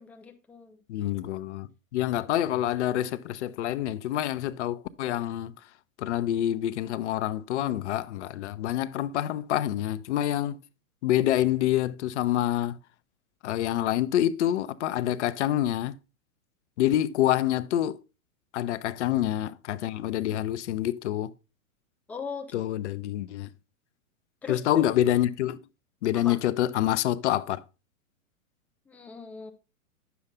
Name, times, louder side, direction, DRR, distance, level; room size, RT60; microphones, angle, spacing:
voice 1, 0.0-0.8 16.8-17.0 22.1-22.6 24.4-24.9 26.1-26.4 28.9-29.5, left 5 dB, 5° left, 0.3 m, -39 dB
voice 2, 0.9-5.5 6.0-10.6 11.0-12.8 13.4-15.9 16.8-18.0 18.5-21.3 22.5-23.5 24.5-25.6 26.0-27.6, left 12 dB, 55° left, 0.6 m, -27 dB
9.5 x 6.9 x 3.5 m
hypercardioid pair, 115°, 43 cm